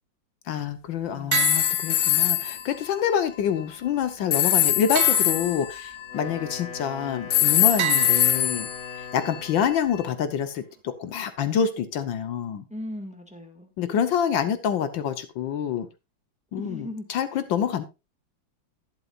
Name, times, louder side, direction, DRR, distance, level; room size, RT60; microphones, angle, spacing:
voice 1, 0.5-8.7 9.1-12.6 13.8-15.9 16.5-17.8, left 8 dB, 75° left, 12 dB, 1.6 m, -27 dB
voice 2, 1.1-1.4 12.7-13.7 16.6-17.0, left 1 dB, 5° right, 5 dB, 1.7 m, -38 dB
sound 1, 1.3-2.6 4.3-6.8 7.3-9.6, left 12 dB, 60° left, 1.1 m, -23 dB
sound 2, 1.3-2.6 4.9-6.0 7.8-9.0, right 13 dB, 70° right, 1.2 m, -31 dB
Wind instrument woodwind instrument, 6.0-9.8, left 5 dB, 35° left, 4.9 m, -40 dB
11.0 x 11.0 x 2.5 m, 0.26 s
omnidirectional pair, 2.2 m